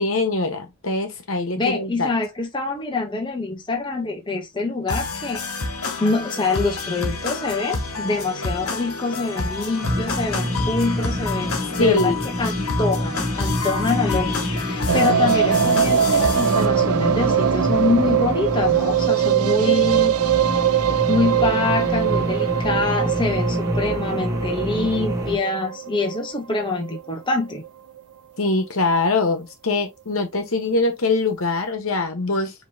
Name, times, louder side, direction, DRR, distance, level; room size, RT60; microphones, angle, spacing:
voice 1, 0.0-2.1 11.8-12.3 28.4-32.5, left 3 dB, 65° left, 1.3 m, -22 dB
voice 2, 1.5-5.4 6.0-12.1 12.4-20.1 21.1-27.6, left 3 dB, 20° left, 0.9 m, -25 dB
sound 1, 4.9-16.7, left 3 dB, 85° left, 1.3 m, -29 dB
sound 2, 9.8-25.4, equal, 15° right, 1.1 m, -27 dB
sound 3, 14.9-27.0 27.3-27.4 27.6-27.7 28.0-28.1, right 9 dB, 80° right, 0.5 m, -22 dB
5.2 x 3.2 x 2.8 m
head